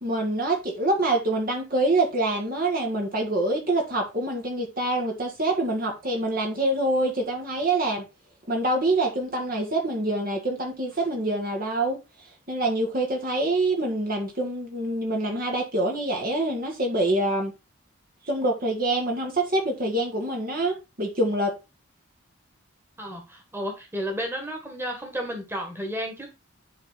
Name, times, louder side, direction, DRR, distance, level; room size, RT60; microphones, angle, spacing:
voice 1, 0.0-8.0 8.5-12.0 12.5-17.5 18.2-21.5, right 2 dB, 40° right, 1.7 m, -25 dB
voice 2, 23.0-26.3, equal, 10° right, 1.9 m, -32 dB
10.5 x 3.8 x 4.2 m
head